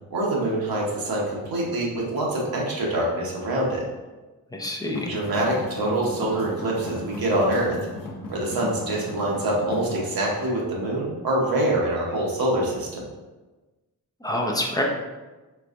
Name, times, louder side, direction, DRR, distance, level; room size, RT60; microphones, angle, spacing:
voice 1, 0.1-3.8 5.0-7.8 8.3-13.1, right 1 dB, 75° right, -4 dB, 1.0 m, -25 dB
voice 2, 4.5-5.2 14.2-14.8, left 1 dB, 10° left, -1 dB, 0.4 m, -27 dB
sound 1, 4.8-10.1, left 2 dB, 65° left, 0.6 m, -36 dB
4.5 x 3.4 x 2.5 m, 1.2 s
wide cardioid pair, 175°, 36 cm